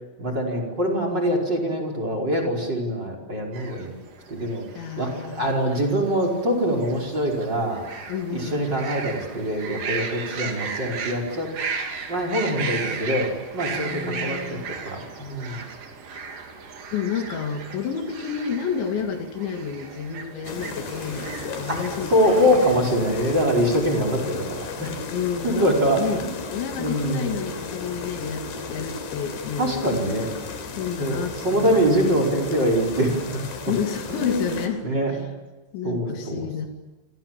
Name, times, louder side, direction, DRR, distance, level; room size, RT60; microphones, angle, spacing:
voice 1, 0.2-3.9 4.3-4.6 5.0-7.8 8.3-11.5 12.1-15.7 21.7-21.8 22.1-25.0 25.4-26.3 26.8-27.3 29.6-30.3 31.0-33.4 34.1-35.2 35.8-36.5, equal, 25° right, 4 dB, 5.2 m, -24 dB
sound 1, 3.5-22.8, right 5 dB, 50° right, 4.1 m, -36 dB
voice 2, 4.8-5.5 8.1-8.7 12.5-12.8 13.9-14.6 16.9-22.3 24.2-24.3 25.1-26.2 26.5-30.0 30.7-32.1 33.7-34.8 35.1-35.2 35.7-36.7, left 7 dB, 80° left, 5 dB, 4.7 m, -30 dB
sound 2, 20.4-34.7, left 4 dB, 65° left, 5.1 m, -35 dB
29.5 x 26.5 x 7.5 m, 1.2 s
omnidirectional pair, 5.2 m